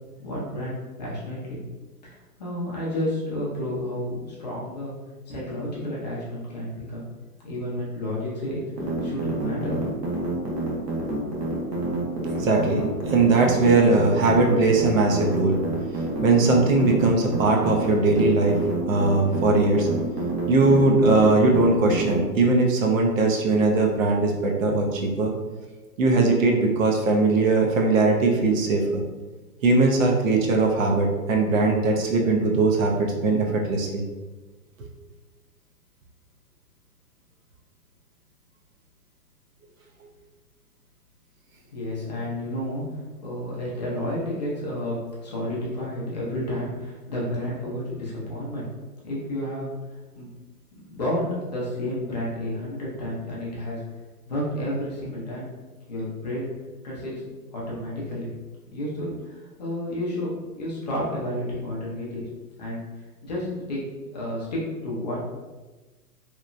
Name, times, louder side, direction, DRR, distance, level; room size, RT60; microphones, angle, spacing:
voice 1, 0.2-1.6 2.4-4.9 5.3-7.0 7.4-10.0 41.7-42.8 43.2-48.7 49.0-49.7 50.1-50.3 50.7-53.8 54.3-55.5 55.9-56.5 56.8-57.1 57.5-58.3 58.7-62.2 62.6-62.8 63.2-63.8 64.1-65.2, left 1 dB, 30° left, -6 dB, 0.4 m, -31 dB
sound 1, 8.8-22.2, right 2 dB, 90° right, 1.0 m, -28 dB
voice 2, 12.3-15.6 16.2-18.6 18.9-19.9 20.5-25.3 26.0-29.0 29.6-34.0, right 3 dB, 55° right, 0 dB, 0.6 m, -20 dB
2.9 x 2.1 x 2.4 m, 1.2 s
hypercardioid pair, 145°, 48 cm